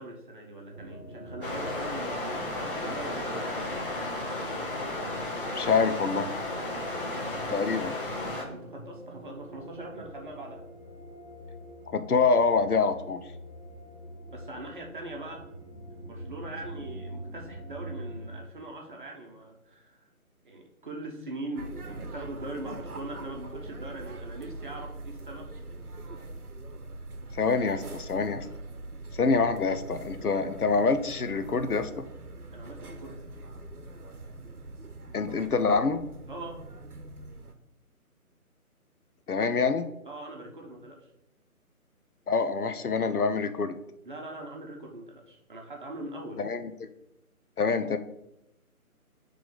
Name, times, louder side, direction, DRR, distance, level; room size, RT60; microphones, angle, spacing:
voice 1, 0.0-3.4 6.9-7.2 8.4-10.6 14.3-15.4 16.0-20.1 20.4-25.5 27.6-27.7 32.5-33.2 36.3-36.6 40.1-41.1 44.0-46.4, right 1 dB, 35° right, 0 dB, 0.9 m, -41 dB
sound 1, 0.7-18.4, right 1 dB, 20° left, 1.1 m, -44 dB
sound 2, 1.4-8.4, left 2 dB, 35° left, 1.0 m, -34 dB
voice 2, 5.5-6.3 7.5-7.9 11.9-13.2 27.3-28.5 29.1-32.0 35.1-36.0 39.3-39.9 42.3-43.8 46.4-46.9 47.6-48.0, left 4 dB, 80° left, 9 dB, 0.7 m, -26 dB
sound 3, 21.6-37.5, right 2 dB, 85° right, 0.9 m, -42 dB
8.2 x 3.3 x 3.8 m, 0.84 s
figure-of-eight pair, 150°, 44 cm